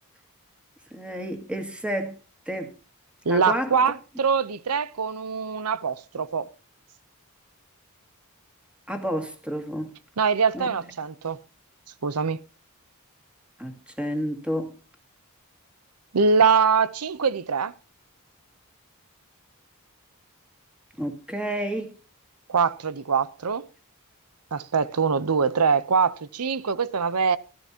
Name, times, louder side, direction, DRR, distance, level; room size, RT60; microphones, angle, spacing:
voice 1, 0.9-2.2 2.5-2.7 3.3-3.8 8.9-9.9 10.5-10.7 13.6-14.7 21.0-21.9, equal, 5° right, 2.2 m, -30 dB
voice 2, 3.3-6.5 10.2-11.4 12.0-12.4 16.1-17.7 22.5-23.7 24.5-27.4, right 5 dB, 85° right, 0.7 m, -23 dB
15.5 x 13.0 x 2.8 m
head